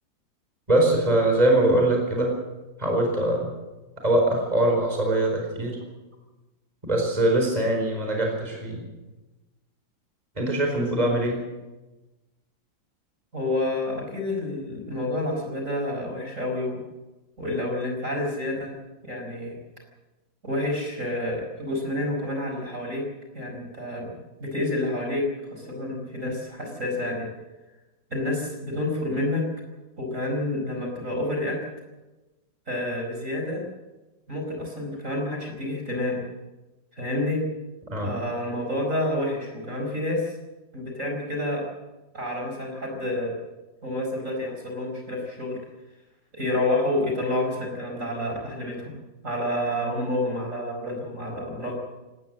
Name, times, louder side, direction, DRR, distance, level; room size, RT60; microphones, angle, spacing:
voice 1, 0.7-2.3 2.8-3.5 4.0-5.8 6.8-8.8 10.4-11.4 37.9-38.1, right 1 dB, 20° right, 1 dB, 4.7 m, -22 dB
voice 2, 13.3-16.8 17.4-18.7 19.0-19.6 20.4-23.1 23.3-24.1 24.4-27.3 28.1-29.4 30.0-31.6 32.7-33.6 34.3-36.2 36.9-37.4 38.0-40.4 40.7-41.6 42.1-43.4 43.8-45.6 46.3-48.9 49.2-51.8, left 1 dB, 40° right, 2 dB, 5.2 m, -29 dB
19.0 x 18.5 x 7.7 m, 1.1 s
omnidirectional pair, 2.0 m